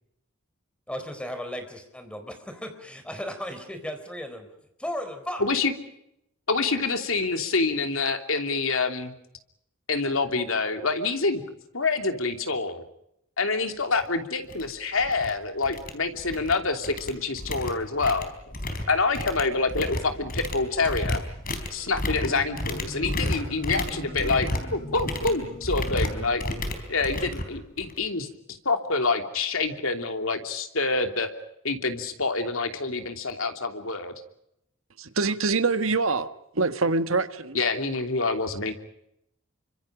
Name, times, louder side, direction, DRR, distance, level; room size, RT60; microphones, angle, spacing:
voice 1, 0.9-4.5 4.8-5.4, equal, 5° left, 7 dB, 4.2 m, -35 dB
voice 2, 5.4-5.7 6.5-9.1 9.9-11.4 11.7-12.8 13.4-18.3 18.9-21.2 21.7-26.4 26.9-28.3 28.6-31.3 31.6-34.1 37.5-38.7, left 3 dB, 75° left, 6 dB, 3.1 m, -26 dB
sound 1, 14.0-14.1 14.5-14.7 15.0-15.3 15.6-16.5 16.8-28.1, left 1 dB, 45° left, 4.3 m, -32 dB
Marimba xylophone, 21.8-27.3, equal, 20° left, 5.5 m, -40 dB
voice 3, 35.0-36.3 36.5-37.6, right 3 dB, 75° right, 10 dB, 1.6 m, -24 dB
29.5 x 25.5 x 5.2 m, 0.79 s
head